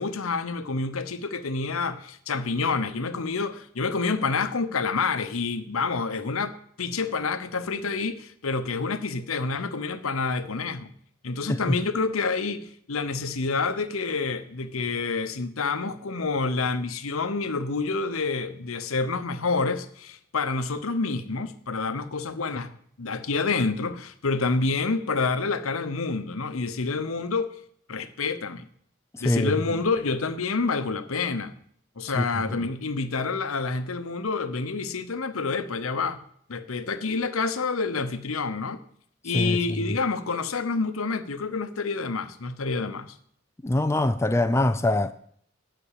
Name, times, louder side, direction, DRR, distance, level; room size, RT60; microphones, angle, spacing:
voice 1, 0.0-6.5 6.8-10.9 11.2-22.7 23.0-27.5 27.9-28.7 29.2-31.6 32.0-36.2 36.5-38.8 39.2-43.2, left 4 dB, 75° left, 0.9 m, -28 dB
voice 2, 43.6-45.1, left 1 dB, 10° left, 0.3 m, -23 dB
10.0 x 6.0 x 8.4 m
head